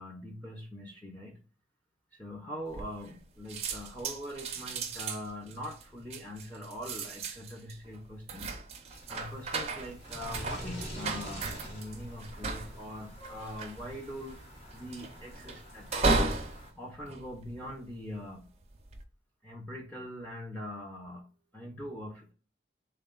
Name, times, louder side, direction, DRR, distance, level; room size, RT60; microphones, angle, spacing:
voice 1, 0.0-1.4 2.1-8.5 9.1-14.4 14.7-16.2 16.8-18.5 19.4-21.3 21.5-22.3, equal, 10° left, -1 dB, 0.6 m, -42 dB
sound 1, 2.7-3.2 3.5-18.0 18.6-19.0, right 3 dB, 35° right, 0.5 m, -35 dB
sound 2, 8.9-16.7, equal, 30° left, 1.0 m, -46 dB
3.8 x 2.3 x 3.7 m, 0.37 s
head